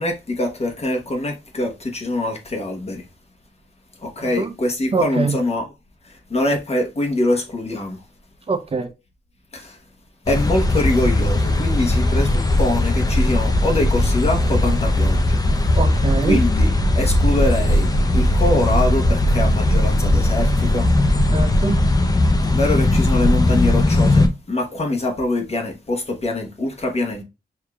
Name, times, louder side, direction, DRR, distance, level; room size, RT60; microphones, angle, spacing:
voice 1, 0.0-3.0 4.0-5.7 6.3-8.0 9.5-9.8 10.3-15.4 16.2-20.8 22.5-27.2, left 2 dB, 40° left, 1.1 m, -24 dB
voice 2, 4.2-4.5 4.9-5.4 8.5-8.9 15.8-16.4 21.3-21.8, right 4 dB, 35° right, 0.6 m, -23 dB
sound 1, 10.3-24.3, left 1 dB, 20° left, 0.5 m, -18 dB
6.7 x 2.8 x 2.3 m
wide cardioid pair, 120°, 17 cm